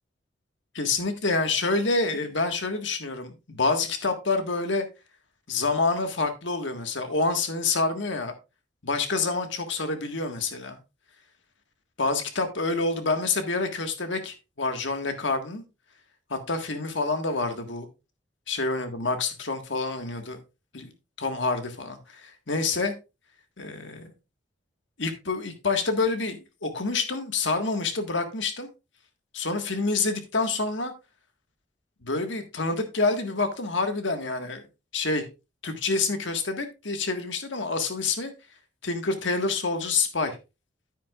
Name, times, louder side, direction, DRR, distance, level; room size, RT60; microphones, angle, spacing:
voice 1, 0.7-4.9 5.5-8.3 8.8-10.8 12.0-15.6 16.3-17.9 18.5-20.4 20.7-20.9 21.2-22.9 23.6-24.1 25.0-28.7 29.3-30.9 32.0-34.6 34.9-35.2 35.6-38.3 38.8-40.3, left 3 dB, 75° left, 6 dB, 1.6 m, -27 dB
10.0 x 9.5 x 2.4 m, 0.27 s
head